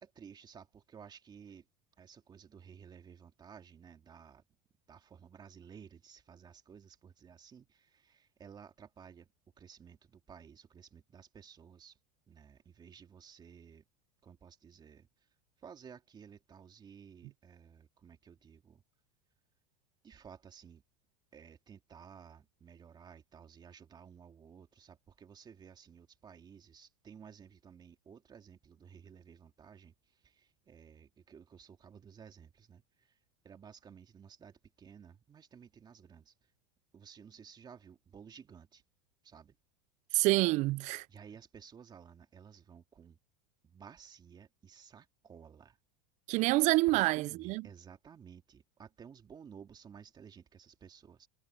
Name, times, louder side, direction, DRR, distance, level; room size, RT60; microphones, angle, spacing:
voice 1, 0.0-1.7 2.0-4.4 4.9-9.3 9.6-12.0 12.3-13.8 14.2-15.3 15.6-18.8 20.0-20.8 21.3-33.2 33.4-36.5 36.9-38.8 39.2-39.6 41.1-43.2 43.6-45.8 46.9-51.3, right 7 dB, 25° right, 2.7 m, -55 dB
voice 2, 40.1-41.1 46.3-47.6, right 21 dB, 40° right, 0.4 m, -27 dB
supercardioid pair, 130°, 18 cm